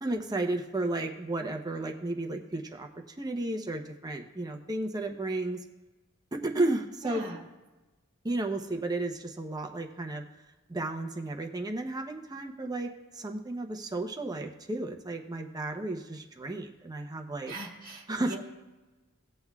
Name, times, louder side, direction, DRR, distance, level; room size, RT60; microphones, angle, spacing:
voice 1, 0.0-5.6 6.3-7.3 8.2-10.2 10.7-17.5 18.1-18.4, right 2 dB, 20° right, 4 dB, 0.7 m, -33 dB
voice 2, 7.0-7.4 17.5-18.4, right 2 dB, 40° right, -1 dB, 2.4 m, -41 dB
18.0 x 7.8 x 2.3 m, 1.2 s
head